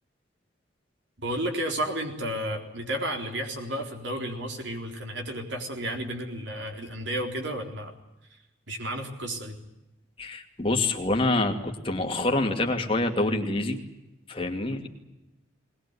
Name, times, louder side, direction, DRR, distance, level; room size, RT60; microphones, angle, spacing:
voice 1, 1.2-7.9 8.7-9.6, right 1 dB, 65° right, 3 dB, 3.9 m, -32 dB
voice 2, 10.2-13.8 14.3-14.9, left 2 dB, 30° left, 3 dB, 2.5 m, -26 dB
20.5 x 20.5 x 9.6 m, 0.98 s
head